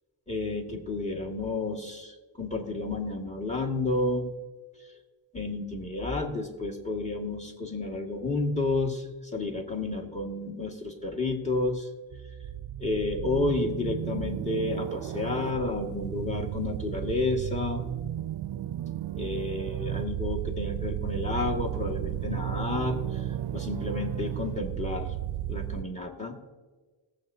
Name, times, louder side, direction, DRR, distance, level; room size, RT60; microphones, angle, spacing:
voice 1, 0.3-4.3 5.3-9.1 9.3-11.9 12.8-17.9 19.1-23.0 23.5-25.1 25.5-26.4, left 2 dB, 15° left, 1 dB, 2.0 m, -31 dB
sound 1, 12.1-25.8, right 12 dB, 55° right, 0.6 m, -34 dB
20.0 x 8.0 x 2.8 m, 1.3 s
cardioid pair, 55°, 48 cm